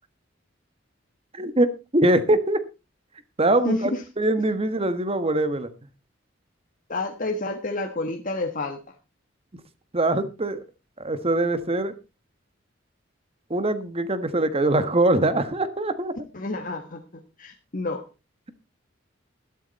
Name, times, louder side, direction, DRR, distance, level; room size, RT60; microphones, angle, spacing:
voice 1, 1.3-2.6 3.4-5.7 9.9-10.6 11.0-11.9 13.5-16.1, right 1 dB, 30° right, 11 dB, 1.4 m, -23 dB
voice 2, 3.6-4.0 6.9-8.8 16.3-18.0, left 2 dB, 45° left, 3 dB, 1.4 m, -29 dB
12.5 x 12.0 x 4.1 m, 0.30 s
head